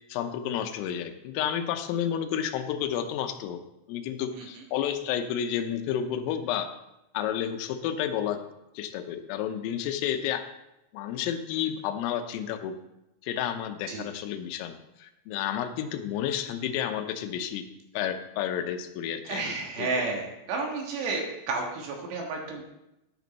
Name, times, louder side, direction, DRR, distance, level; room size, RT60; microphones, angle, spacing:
voice 1, 0.1-3.6 3.9-6.7 7.1-8.4 8.8-10.4 10.9-12.7 13.2-17.7 17.9-19.9, left 9 dB, 85° left, 8 dB, 3.5 m, -31 dB
voice 2, 19.2-22.6, right 3 dB, 65° right, 0 dB, 3.3 m, -31 dB
11.0 x 10.5 x 4.1 m, 0.90 s
omnidirectional pair, 5.9 m